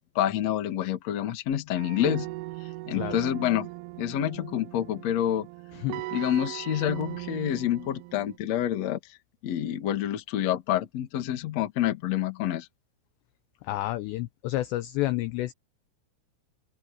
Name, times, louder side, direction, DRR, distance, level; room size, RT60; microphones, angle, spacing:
voice 1, 0.0-2.3 2.9-3.7 4.0-5.5 6.1-9.0 9.4-12.7, left 11 dB, 60° left, 1.7 m, -28 dB
sound 1, 1.7-8.4, right 20 dB, 80° right, 2.9 m, -38 dB
voice 2, 5.7-6.1 13.6-15.5, left 16 dB, 85° left, 2.5 m, -30 dB
open air
omnidirectional pair, 5.8 m